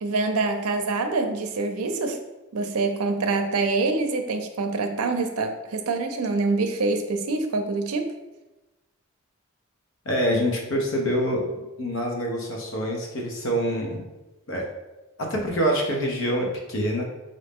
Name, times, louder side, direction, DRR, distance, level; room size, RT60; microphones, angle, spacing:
voice 1, 0.0-2.2 2.5-8.1, right 3 dB, 90° right, 6 dB, 0.5 m, -25 dB
voice 2, 10.0-14.0 14.5-14.7 15.2-17.0, equal, 60° left, 0 dB, 0.8 m, -26 dB
4.0 x 2.6 x 3.5 m, 1.1 s
head